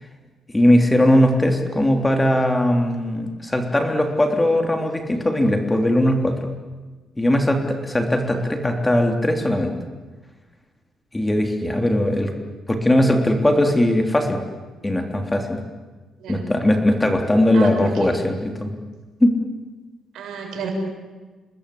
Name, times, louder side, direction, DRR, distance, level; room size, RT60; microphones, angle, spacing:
voice 1, 0.5-6.5 7.2-9.7 11.1-12.3 12.7-14.4 14.8-15.6 16.3-18.7 19.2-19.4, left 1 dB, 15° left, 4 dB, 3.4 m, -19 dB
voice 2, 16.2-16.5 17.5-17.9 20.1-20.7, right 7 dB, 75° right, 2 dB, 6.8 m, -32 dB
28.5 x 20.0 x 8.6 m, 1.3 s
cardioid pair, 90°, 0 cm